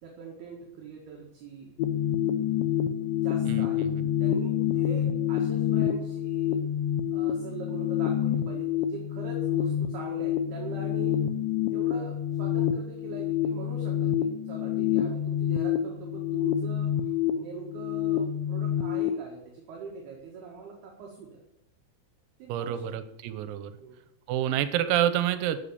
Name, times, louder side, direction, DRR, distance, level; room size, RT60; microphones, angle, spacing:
voice 1, 0.0-1.7 3.2-6.6 7.1-11.2 11.7-21.4 22.4-22.8 23.8-24.0, right 5 dB, 60° right, -1 dB, 3.4 m, -43 dB
sound 1, 1.8-19.1, left 10 dB, 80° left, 2.6 m, -27 dB
voice 2, 3.5-4.1 22.5-23.7 24.3-25.6, right 11 dB, 85° right, 12 dB, 3.6 m, -28 dB
14.0 x 7.8 x 7.0 m, 0.82 s
omnidirectional pair, 6.0 m